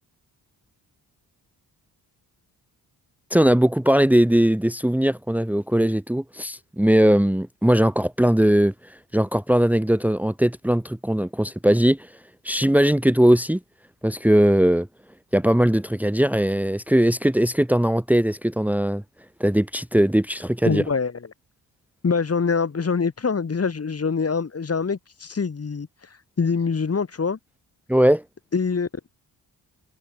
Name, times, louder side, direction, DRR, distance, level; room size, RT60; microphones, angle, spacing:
voice 1, 3.3-8.7 9.1-12.1 12.4-13.6 14.0-14.9 15.3-19.0 19.4-20.8 27.9-28.2, right 1 dB, 5° right, 1.7 m, -19 dB
voice 2, 20.6-21.1 22.0-25.9 26.4-27.4 28.5-29.1, left 5 dB, 35° left, 3.0 m, -24 dB
cardioid pair, 105°, 40 cm